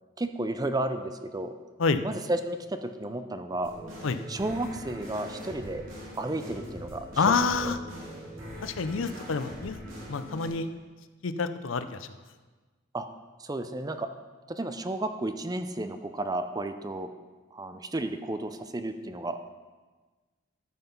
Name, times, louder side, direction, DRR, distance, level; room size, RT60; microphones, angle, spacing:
voice 1, 0.2-1.5 2.0-3.7 4.3-5.8 6.2-7.4 7.6-7.7 12.9-13.1 13.4-14.1 14.5-17.1 17.5-19.4, right 2 dB, 20° right, 9 dB, 0.5 m, -32 dB
sound 1, 3.6-10.5, equal, 75° right, 3.0 m, -42 dB
voice 2, 7.2-7.8 8.6-9.8 10.1-10.7 11.2-12.1, left 4 dB, 75° left, 11 dB, 0.6 m, -27 dB
13.5 x 5.8 x 5.4 m, 1.3 s
head